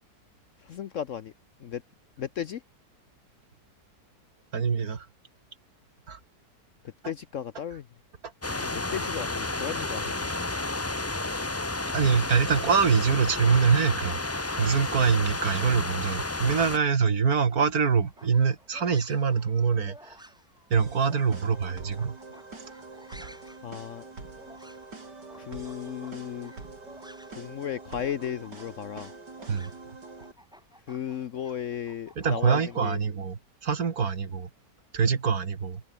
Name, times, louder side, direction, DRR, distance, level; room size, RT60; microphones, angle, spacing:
voice 1, 0.6-1.3 1.6-1.8 2.2-2.6 7.0-7.9 8.6-10.3 23.6-24.0 25.4-26.5 27.4-29.1 30.9-33.0, left 9 dB, 60° left, 0.9 m, -35 dB
voice 2, 4.5-5.1 6.1-6.2 11.9-14.2 14.6-20.1 20.7-22.2 23.2-23.3 29.5-29.7 32.2-34.5 34.9-35.8, right 6 dB, 60° right, 2.3 m, -24 dB
sound 1, 8.4-16.8, left 2 dB, 20° left, 0.3 m, -31 dB
sound 2, 17.8-27.5 27.7-32.8, equal, ahead, 5.6 m, -54 dB
sound 3, 20.7-30.3, right 3 dB, 75° right, 5.0 m, -45 dB
open air
omnidirectional pair, 1.8 m